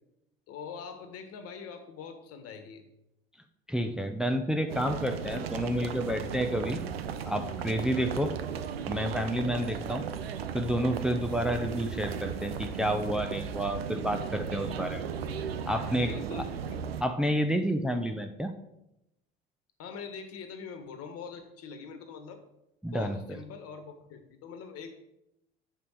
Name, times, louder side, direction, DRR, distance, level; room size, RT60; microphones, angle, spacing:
voice 1, 0.5-2.8 7.9-8.1 16.0-16.8 19.8-22.4 22.9-24.9, left 6 dB, 50° left, 8 dB, 1.5 m, -43 dB
voice 2, 3.7-6.8 7.2-8.3 8.9-10.0 10.5-15.0 15.7-16.1 17.0-18.5 22.8-23.4, equal, ahead, 5 dB, 0.7 m, -30 dB
sound 1, 4.7-17.0, right 7 dB, 85° right, 0.6 m, -36 dB
7.1 x 5.4 x 6.3 m, 0.85 s
figure-of-eight pair, 65°, 30 cm